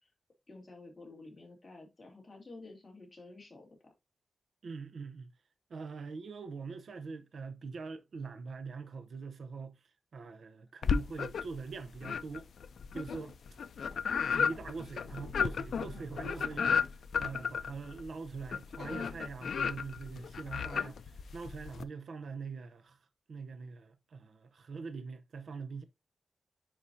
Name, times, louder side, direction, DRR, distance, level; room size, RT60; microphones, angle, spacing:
voice 1, 0.5-3.9, left 2 dB, 25° left, 2.9 m, -51 dB
voice 2, 4.6-5.3 5.7-9.8 10.1-12.5 12.9-13.4 14.3-16.9 17.2-23.0 23.3-25.8, right 4 dB, 65° right, 0.7 m, -43 dB
sound 1, 10.8-11.6 12.0-21.8, left 6 dB, 80° left, 0.5 m, -34 dB
9.9 x 4.9 x 2.7 m
wide cardioid pair, 175°, 0 cm